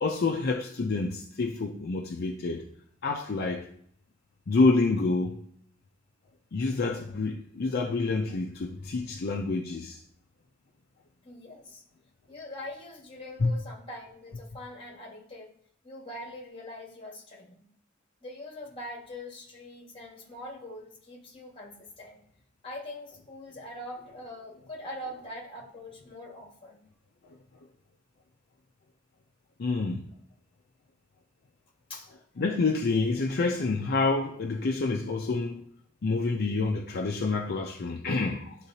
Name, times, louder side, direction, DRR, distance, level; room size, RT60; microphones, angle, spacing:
voice 1, 0.0-2.7 3.0-3.7 4.5-5.4 6.5-10.0 13.4-13.5 27.3-27.4 29.6-30.1 32.4-35.6 36.0-38.6, left 3 dB, 50° left, 0.5 m, -28 dB
voice 2, 11.2-11.8 12.3-15.5 15.8-17.7 18.2-22.2 22.6-26.8 31.9-32.1, left 1 dB, 25° left, 1.7 m, -43 dB
10.5 x 3.8 x 2.8 m
head